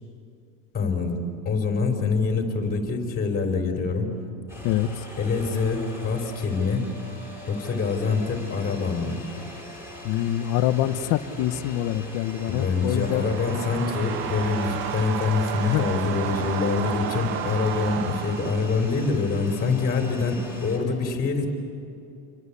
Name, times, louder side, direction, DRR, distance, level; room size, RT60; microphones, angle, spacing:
voice 1, 0.7-4.1 5.2-6.9 7.5-9.2 12.5-21.5, left 4 dB, 20° left, 3 dB, 4.0 m, -25 dB
sound 1, 4.5-20.8, left 1 dB, 5° right, 6.7 m, -42 dB
voice 2, 4.6-5.1 10.0-13.3 15.6-15.9, left 12 dB, 40° left, 11 dB, 1.1 m, -25 dB
sound 2, 12.2-19.3, right 10 dB, 25° right, 0.6 m, -33 dB
sound 3, 14.0-19.2, right 4 dB, 70° right, 2.3 m, -43 dB
28.5 x 24.5 x 8.5 m, 2.6 s
supercardioid pair, 160°, 47 cm